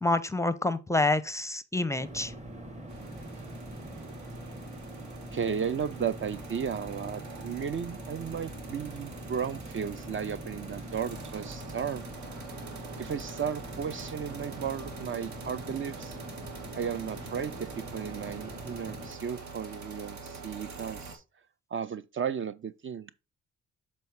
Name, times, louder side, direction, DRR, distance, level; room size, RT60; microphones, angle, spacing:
voice 1, 0.0-2.3, left 2 dB, 10° left, 0.6 m, -27 dB
sound 1, 2.0-19.1, right 1 dB, 20° right, 1.4 m, -43 dB
sound 2, 2.9-21.2, right 4 dB, 70° right, 2.0 m, -45 dB
voice 2, 5.3-12.0 13.0-16.2 16.8-21.2 21.7-23.1, right 7 dB, 40° right, 0.5 m, -34 dB
6.8 x 4.3 x 4.7 m
cardioid pair, 90°, 30 cm